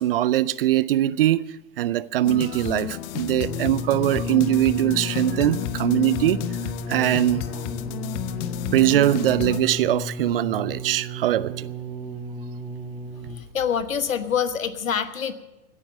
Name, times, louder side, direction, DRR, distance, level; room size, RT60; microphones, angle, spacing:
voice 1, 0.0-1.4 1.8-6.4 6.9-7.5 8.7-11.7, right 13 dB, 45° right, 0.5 m, -21 dB
sound 1, 2.2-9.6, left 12 dB, 30° left, 0.8 m, -31 dB
sound 2, 3.5-13.6 14.4-14.5, left 1 dB, 5° right, 0.7 m, -34 dB
voice 2, 13.3-15.3, left 7 dB, 70° left, 1.3 m, -26 dB
16.5 x 9.8 x 7.5 m
figure-of-eight pair, 105°, 41 cm